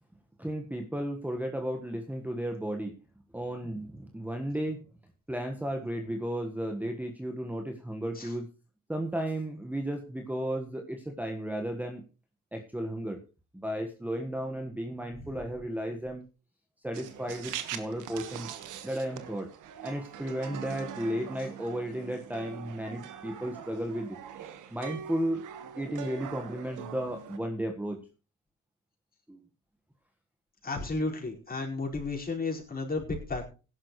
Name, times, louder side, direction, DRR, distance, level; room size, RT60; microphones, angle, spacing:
voice 1, 0.4-2.9 3.3-4.8 5.3-8.5 8.9-12.0 12.5-13.2 13.5-16.2 16.8-18.5 18.8-19.5 19.8-24.2 24.7-25.4 25.8-28.0 29.3-29.4, right 1 dB, 5° right, 4 dB, 1.5 m, -34 dB
sound 1, 16.9-27.4, right 9 dB, 85° right, 1.5 m, -43 dB
voice 2, 30.6-33.4, left 3 dB, 30° left, -1 dB, 5.0 m, -33 dB
17.0 x 11.0 x 3.2 m, 0.33 s
cardioid pair, 90°, 30 cm